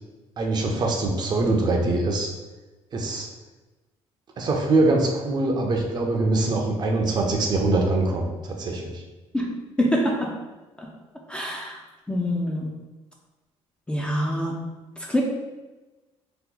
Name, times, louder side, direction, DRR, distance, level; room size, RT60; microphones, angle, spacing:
voice 1, 0.4-2.3 2.9-3.3 4.4-9.0, right 2 dB, 40° right, 1 dB, 0.5 m, -23 dB
voice 2, 9.8-10.3 10.8-10.9 11.3-11.8 12.1-12.7 13.9-14.6 15.1-15.2, equal, 10° left, -1 dB, 0.4 m, -25 dB
2.9 x 2.2 x 3.7 m, 1.2 s
cardioid pair, 125°, 11 cm